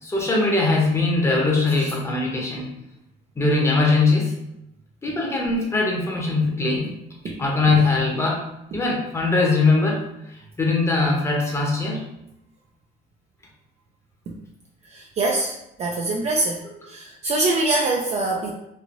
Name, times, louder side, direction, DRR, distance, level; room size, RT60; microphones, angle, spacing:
voice 1, 0.0-2.7 3.4-4.3 5.0-6.9 7.2-8.4 8.7-10.0 10.6-12.0, left 3 dB, 15° left, -1 dB, 0.8 m, -21 dB
voice 2, 14.9-15.5 15.8-16.6 16.9-18.5, right 2 dB, 40° right, 0 dB, 0.4 m, -24 dB
3.1 x 2.5 x 2.5 m, 0.85 s
cardioid pair, 110°, 17 cm